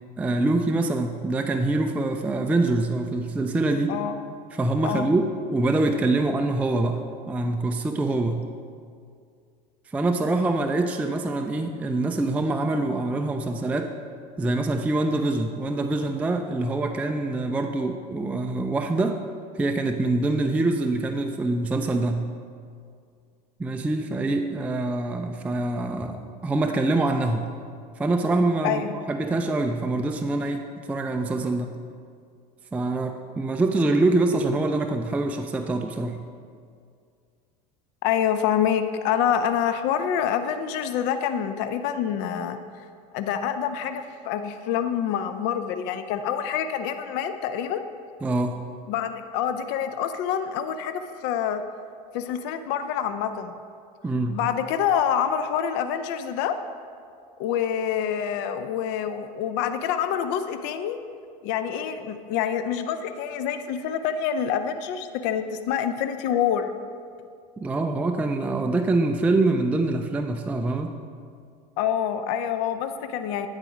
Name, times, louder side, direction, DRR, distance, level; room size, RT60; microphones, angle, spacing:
voice 1, 0.2-4.0 4.5-8.5 9.9-13.9 14.4-19.2 19.6-22.3 23.6-27.5 28.0-31.8 32.7-36.2 48.2-48.6 54.0-54.4 67.6-71.0, right 2 dB, 5° right, 5 dB, 0.3 m, -25 dB
voice 2, 38.0-42.6 43.1-47.8 48.9-51.6 52.1-53.6 54.3-56.6 57.4-61.0 61.4-66.7 71.8-73.5, left 8 dB, 55° left, 9 dB, 0.4 m, -26 dB
9.0 x 4.0 x 4.9 m, 2.2 s
hypercardioid pair, 95°, 21 cm